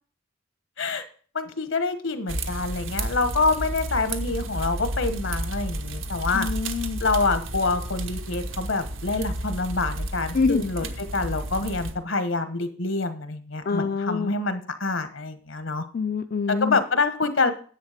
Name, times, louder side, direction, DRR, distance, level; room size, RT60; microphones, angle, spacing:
voice 1, 1.3-6.5 7.0-15.8 16.5-17.5, left 3 dB, 75° left, 11 dB, 1.3 m, -26 dB
sound 1, 2.3-11.9, right 1 dB, 80° right, 1.3 m, -32 dB
voice 2, 6.3-7.0 10.3-10.6 13.7-14.3 15.9-16.8, left 4 dB, 50° left, 7 dB, 0.4 m, -25 dB
10.5 x 8.2 x 5.0 m, 0.43 s
head